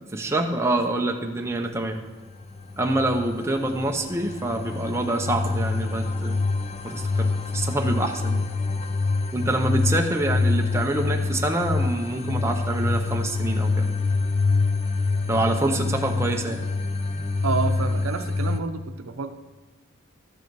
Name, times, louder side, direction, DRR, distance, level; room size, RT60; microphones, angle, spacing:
voice 1, 0.1-2.0 2.8-6.4 6.8-8.4 9.3-13.9 15.3-16.6 17.1-17.3, right 2 dB, 15° right, 3 dB, 0.7 m, -26 dB
sound 1, 2.3-18.6, left 3 dB, 30° left, 0.5 m, -26 dB
voice 2, 17.4-19.3, right 4 dB, 85° right, 8 dB, 0.7 m, -29 dB
12.5 x 7.6 x 4.7 m, 1.3 s
head